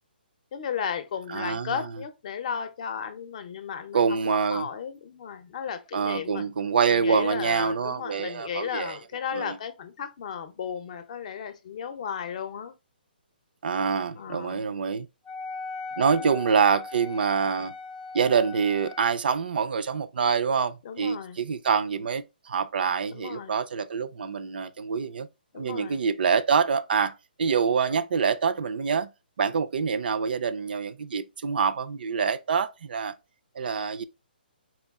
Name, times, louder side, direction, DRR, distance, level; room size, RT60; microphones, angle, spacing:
voice 1, 0.5-6.4 6.9-12.7 14.2-14.6 16.2-16.3 20.8-21.4 23.1-23.6 25.5-26.0, left 7 dB, 45° left, 0.6 m, -35 dB
voice 2, 1.3-1.9 3.9-4.7 5.9-9.0 9.3-9.6 13.6-15.1 16.0-17.7 18.1-25.3 25.6-27.1 27.4-29.1 29.4-33.1 33.6-34.0, right 6 dB, 70° right, 0.4 m, -26 dB
Wind instrument woodwind instrument, 15.3-19.2, left 4 dB, 10° left, 0.3 m, -39 dB
4.3 x 2.3 x 3.5 m
hypercardioid pair, 155°, 5 cm